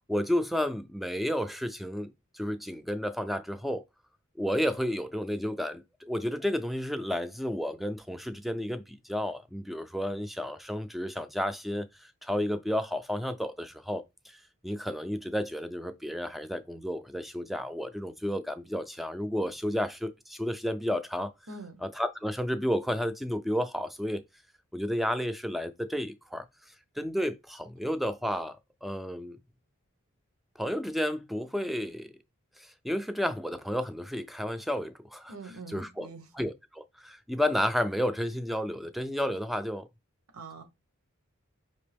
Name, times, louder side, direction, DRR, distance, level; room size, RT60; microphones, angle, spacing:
voice 1, 0.1-2.1 2.3-3.8 4.4-14.0 14.6-21.3 21.8-24.2 24.7-26.5 27.0-28.6 28.8-29.4 30.6-32.1 32.6-35.3 35.7-36.1 36.3-39.8, equal, ahead, 0.3 m, -31 dB
voice 2, 21.5-21.8 35.3-36.3 40.3-40.6, right 3 dB, 85° right, 1.0 m, -44 dB
5.1 x 2.9 x 3.4 m
head